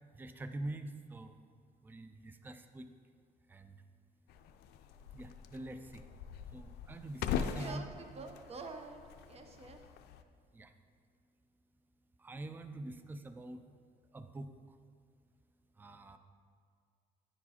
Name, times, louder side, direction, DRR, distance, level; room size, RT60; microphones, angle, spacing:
voice 1, 0.1-1.4 1.8-2.9 3.5-3.8 5.1-6.1 6.5-7.8 10.5-10.7 12.2-13.6 14.1-14.8 15.8-16.2, right 2 dB, 10° right, 9 dB, 0.4 m, -45 dB
sound 1, 4.3-10.2, left 8 dB, 75° left, 0.4 m, -42 dB
voice 2, 7.3-9.0 9.3-9.8, right 4 dB, 35° right, 6 dB, 0.8 m, -47 dB
9.9 x 4.7 x 4.2 m, 2.2 s
cardioid pair, 110°, 17 cm